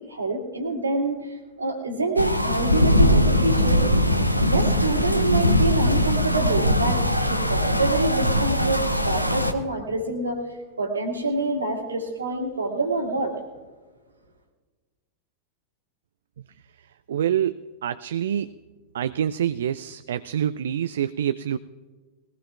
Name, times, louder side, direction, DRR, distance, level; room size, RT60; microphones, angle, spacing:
voice 1, 0.1-1.2 1.6-3.8 4.4-10.4 10.8-13.3, right 2 dB, 75° right, 1 dB, 2.2 m, -26 dB
sound 1, 2.2-9.5, equal, 90° left, 0.7 m, -21 dB
voice 2, 17.1-18.6 18.9-21.6, right 10 dB, 60° right, 13 dB, 0.3 m, -26 dB
21.0 x 18.0 x 2.4 m, 1.4 s
figure-of-eight pair, 90°, 0 cm